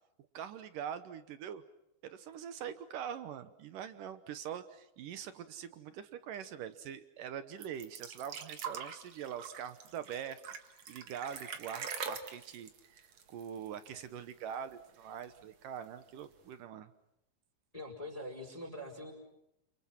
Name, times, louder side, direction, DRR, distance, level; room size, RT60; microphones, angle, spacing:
voice 1, 0.3-1.6 2.0-10.4 10.9-16.9, right 8 dB, 70° right, 12 dB, 2.1 m, -43 dB
sound 1, 7.6-14.0 14.3-14.4 14.7-15.4 16.2-16.3, right 6 dB, 50° right, 2.4 m, -44 dB
voice 2, 17.7-19.1, left 1 dB, 10° left, 1 dB, 4.6 m, -43 dB
29.0 x 29.0 x 5.9 m, 0.82 s
omnidirectional pair, 5.1 m